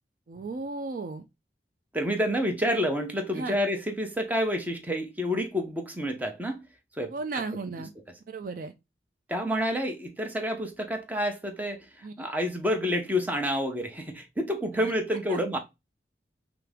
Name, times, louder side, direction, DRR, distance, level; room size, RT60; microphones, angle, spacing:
voice 1, 0.3-1.3 3.3-3.6 7.1-7.9 8.3-8.7 12.0-12.3 14.7-14.9 15.3-15.4, right 3 dB, 50° right, 0.4 m, -35 dB
voice 2, 1.9-6.6 7.0-7.4 9.3-15.6, equal, 10° right, 0.7 m, -29 dB
5.7 x 2.0 x 3.4 m
head